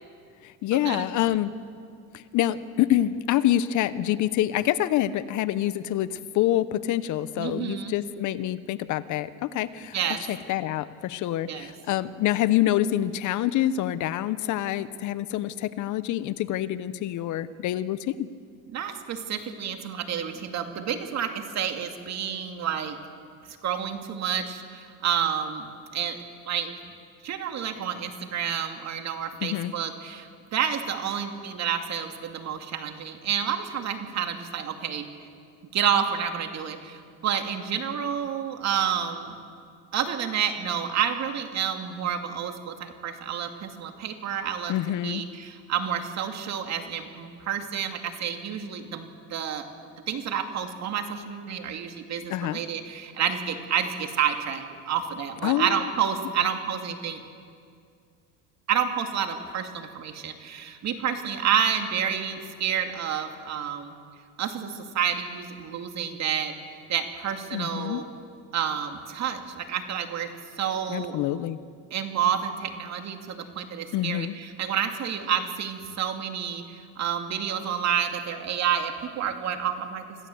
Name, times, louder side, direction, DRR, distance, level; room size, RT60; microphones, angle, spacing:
voice 1, 0.4-1.5 2.1-10.0 10.3-18.3 29.4-29.7 44.7-45.2 52.3-52.6 55.4-55.8 67.5-68.0 70.9-71.6 73.9-74.3, left 13 dB, 55° left, 15 dB, 0.9 m, -26 dB
voice 2, 7.4-7.9 9.9-10.2 11.5-11.7 18.7-23.0 23.6-25.7 25.9-26.2 26.5-26.7 27.2-35.1 35.7-39.3 39.9-44.7 45.0-49.7 50.1-57.2 58.7-63.9 64.4-68.0 68.5-70.3 70.6-71.2 71.9-80.0, right 8 dB, 45° right, 6 dB, 2.4 m, -29 dB
26.0 x 15.0 x 7.9 m, 2.2 s
supercardioid pair, 115°, 37 cm